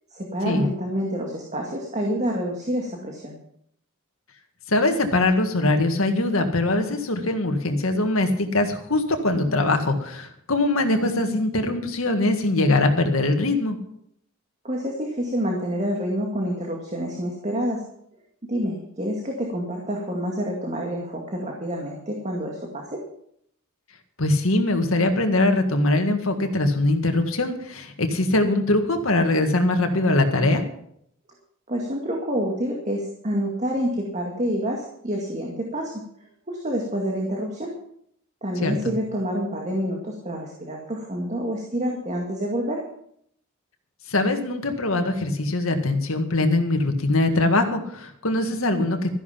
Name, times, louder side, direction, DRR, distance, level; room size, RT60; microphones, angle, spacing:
voice 1, 0.1-3.4 14.6-17.8 18.5-23.0 31.7-35.9 36.5-37.7 38.4-42.8, equal, 35° right, 0 dB, 2.1 m, -28 dB
voice 2, 4.7-13.8 24.2-30.6 38.6-38.9 44.1-49.1, left 2 dB, 75° left, 5 dB, 2.0 m, -22 dB
13.5 x 11.0 x 5.8 m, 0.71 s
head